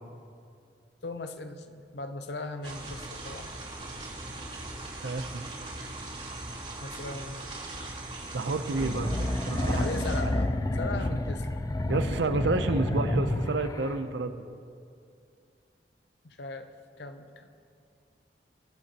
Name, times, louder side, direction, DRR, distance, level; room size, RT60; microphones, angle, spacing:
voice 1, 1.0-3.5 6.8-7.4 9.7-10.5 10.8-11.6 16.2-16.7 17.0-17.5, left 3 dB, 70° left, 8 dB, 0.7 m, -38 dB
sound 1, 2.6-10.2, right 2 dB, 40° right, 3.0 m, -40 dB
voice 2, 4.9-5.4 8.3-10.4 11.9-14.4, right 3 dB, 85° right, 10 dB, 0.6 m, -30 dB
sound 2, 8.7-14.0, left 1 dB, 20° left, 0.4 m, -30 dB
22.0 x 8.2 x 2.9 m, 2.4 s
head